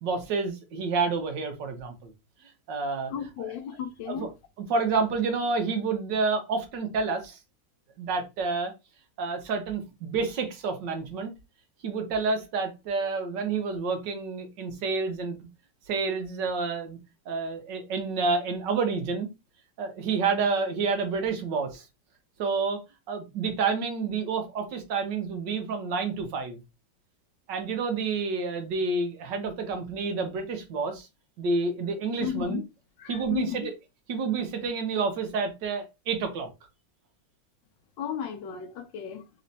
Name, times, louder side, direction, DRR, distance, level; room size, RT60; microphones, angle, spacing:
voice 1, 0.0-2.1 2.7-3.1 3.4-3.5 4.1-4.3 4.7-7.4 8.0-8.7 9.2-11.3 11.8-15.5 15.9-17.0 17.3-19.3 19.8-21.8 22.4-22.8 23.1-26.6 27.5-31.1 31.4-32.6 33.1-33.6 34.1-36.5, right 4 dB, 70° right, 1.6 m, -29 dB
voice 2, 3.1-4.3 32.2-32.6 33.0-33.7 38.0-39.2, left 9 dB, 75° left, 1.5 m, -34 dB
4.2 x 3.1 x 4.0 m
omnidirectional pair, 2.0 m